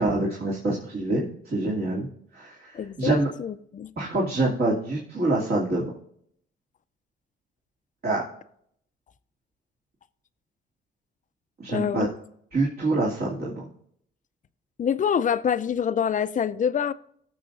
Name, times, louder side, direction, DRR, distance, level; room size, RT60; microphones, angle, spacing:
voice 1, 0.0-2.1 2.3-3.3 4.0-5.9 8.0-8.2 11.6-12.1 12.5-13.6, right 2 dB, 50° right, 2.6 m, -26 dB
voice 2, 2.7-3.9 11.7-12.1 14.8-16.9, left 7 dB, 40° left, 0.5 m, -26 dB
17.5 x 7.0 x 2.6 m
cardioid pair, 90°, 20 cm